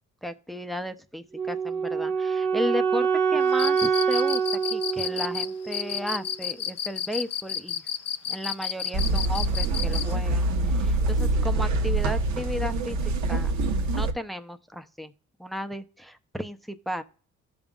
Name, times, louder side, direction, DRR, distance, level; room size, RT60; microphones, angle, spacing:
voice 1, 0.2-7.8 8.3-10.5 10.8-13.0 13.3-13.5 13.8-15.1 15.4-17.0, equal, ahead, 0.7 m, -34 dB
Wind instrument woodwind instrument, 1.3-6.4, right 6 dB, 15° right, 1.2 m, -26 dB
Cricket, 3.5-10.1, left 9 dB, 55° left, 0.7 m, -31 dB
sound 1, 8.9-14.1, right 2 dB, 70° right, 1.1 m, -25 dB
15.5 x 5.4 x 2.4 m
cardioid pair, 90°, 30 cm